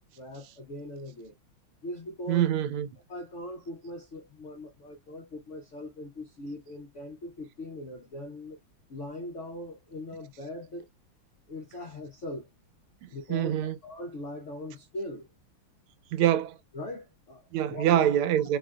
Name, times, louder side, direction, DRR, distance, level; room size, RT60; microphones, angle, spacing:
voice 1, 0.1-1.3 1.8-2.5 3.1-8.6 8.9-10.9 11.5-12.5 13.1-15.3 16.7-18.0, left 1 dB, 75° left, 0.6 m, -40 dB
voice 2, 2.3-2.9 13.0-13.7 16.1-16.6 17.5-18.6, right 11 dB, 85° right, 1.4 m, -25 dB
3.8 x 2.5 x 2.2 m
omnidirectional pair, 2.3 m